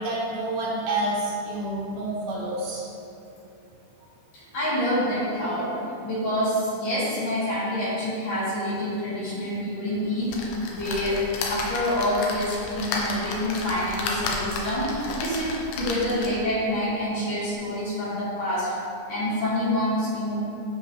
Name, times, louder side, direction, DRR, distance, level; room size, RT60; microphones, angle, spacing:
voice 1, 0.0-2.8, right 2 dB, 70° right, -6 dB, 3.5 m, -28 dB
voice 2, 4.3-5.7 6.0-10.4 10.7-11.2 11.5-18.7 19.1-20.3, left 1 dB, 55° left, -9 dB, 3.4 m, -27 dB
sound 1, 10.3-16.5 17.1-17.2 17.4-17.5, left 3 dB, 90° left, 3.2 m, -32 dB
14.5 x 5.5 x 3.3 m, 2.8 s
omnidirectional pair, 5.2 m